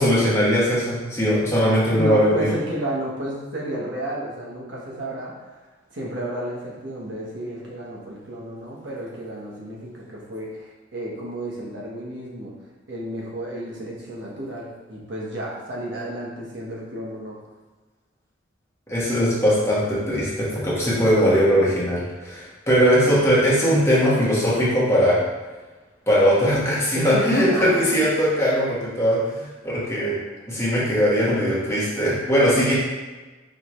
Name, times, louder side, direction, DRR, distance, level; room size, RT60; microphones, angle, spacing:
voice 1, 0.0-2.5 18.9-25.2 26.1-30.1 30.5-32.7, equal, 15° left, -8 dB, 1.3 m, -20 dB
voice 2, 1.9-5.3 5.9-12.5 12.9-17.4 26.9-27.8, right 1 dB, 70° right, -4 dB, 1.1 m, -31 dB
4.8 x 3.5 x 3.1 m, 1.2 s
head